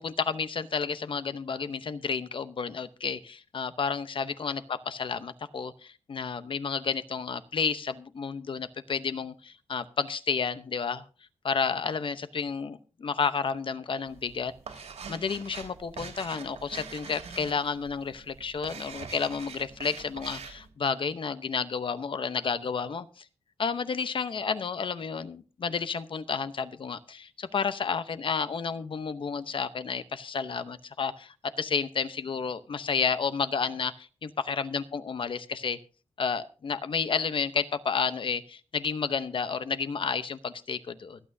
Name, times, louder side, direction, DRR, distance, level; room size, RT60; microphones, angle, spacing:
voice 1, 0.0-11.0 11.4-14.8 15.1-23.2 23.6-35.8 36.2-41.2, left 5 dB, 50° left, 12 dB, 0.8 m, -31 dB
sound 1, 14.1-20.7, right 5 dB, 85° right, 3.2 m, -44 dB
25.0 x 8.7 x 2.7 m, 0.36 s
wide cardioid pair, 130°, 11 cm